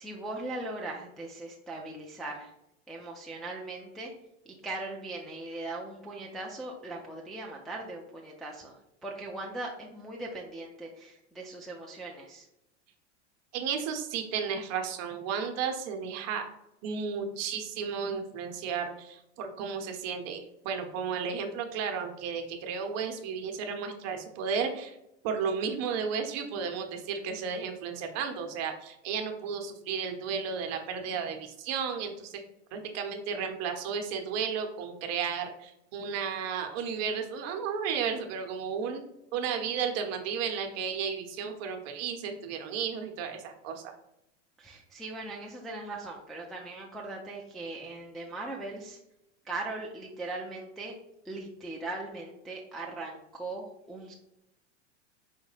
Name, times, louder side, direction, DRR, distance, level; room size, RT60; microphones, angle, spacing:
voice 1, 0.0-2.5 2.9-4.1 4.5-12.5 44.6-49.0 49.4-51.0 51.2-54.1, right 2 dB, ahead, -2 dB, 0.4 m, -39 dB
voice 2, 13.5-16.5 16.8-25.0 25.2-32.4 32.7-39.0 39.3-43.9, right 6 dB, 45° right, 4 dB, 0.9 m, -33 dB
4.9 x 2.1 x 4.8 m, 0.84 s
hypercardioid pair, 110°, 37 cm